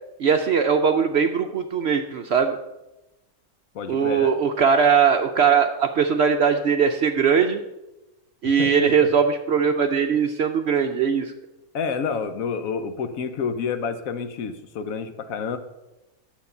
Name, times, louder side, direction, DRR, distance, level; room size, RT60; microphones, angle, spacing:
voice 1, 0.2-2.6 3.9-7.6 8.4-11.3, right 6 dB, 65° right, 6 dB, 0.7 m, -20 dB
voice 2, 3.7-4.3 8.4-9.1 11.7-15.6, left 6 dB, 70° left, 9 dB, 1.2 m, -29 dB
9.4 x 7.1 x 5.4 m, 0.98 s
omnidirectional pair, 1.5 m